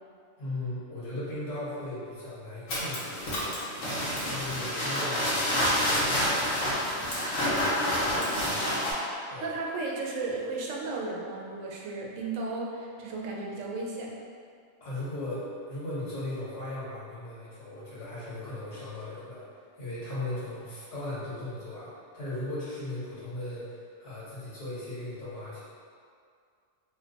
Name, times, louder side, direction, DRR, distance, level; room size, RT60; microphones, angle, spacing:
voice 1, 0.4-3.5 3.9-6.5 9.3-9.6 14.8-15.4 15.7-19.5 19.8-25.6, left 1 dB, 70° left, -10 dB, 1.5 m, -37 dB
sound 1, 2.7-8.9, equal, 90° left, 1.2 m, -28 dB
voice 2, 8.3-14.1, right 3 dB, 85° right, -2 dB, 1.0 m, -35 dB
2.9 x 2.2 x 3.8 m, 2.3 s
omnidirectional pair, 1.3 m